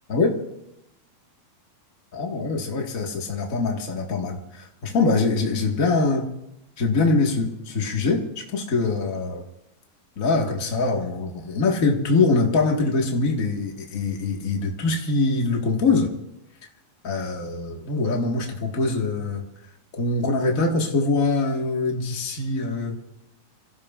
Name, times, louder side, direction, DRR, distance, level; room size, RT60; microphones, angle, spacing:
voice 1, 2.1-6.3 6.8-9.4 10.2-16.1 17.0-19.4 20.0-23.0, left 3 dB, 55° left, 0 dB, 0.8 m, -23 dB
27.0 x 16.5 x 2.4 m, 0.80 s
omnidirectional pair, 4.2 m